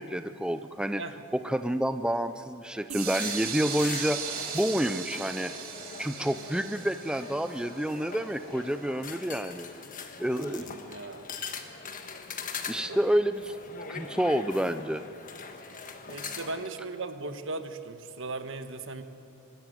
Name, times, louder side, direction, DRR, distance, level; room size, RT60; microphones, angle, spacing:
voice 1, 0.0-1.0 1.3-4.2 4.5-5.5 6.0-9.7 10.2-10.7 12.7-13.5 13.9-15.0, equal, 5° right, 10 dB, 0.4 m, -29 dB
sound 1, 2.9-8.7, right 7 dB, 75° right, 2.7 m, -38 dB
sound 2, 3.1-16.7, left 5 dB, 40° left, 1.4 m, -42 dB
voice 2, 10.6-11.3 12.7-13.0 16.1-19.0, right 3 dB, 60° right, 8 dB, 1.3 m, -38 dB
24.5 x 13.0 x 9.2 m, 2.7 s
head